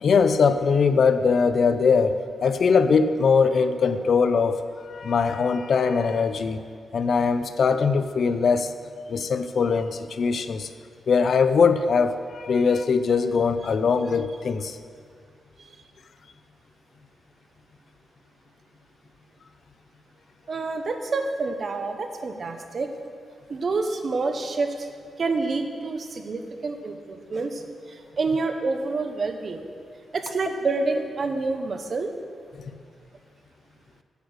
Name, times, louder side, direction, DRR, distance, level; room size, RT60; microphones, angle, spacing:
voice 1, 0.0-6.7 6.9-8.7 9.1-10.7 11.1-14.8, left 5 dB, 55° left, 11 dB, 0.4 m, -21 dB
voice 2, 20.5-22.9 23.5-24.9 25.2-29.7 30.1-32.1, right 3 dB, 45° right, 6 dB, 0.8 m, -28 dB
8.2 x 7.9 x 6.4 m, 2.2 s
wide cardioid pair, 135°, 0 cm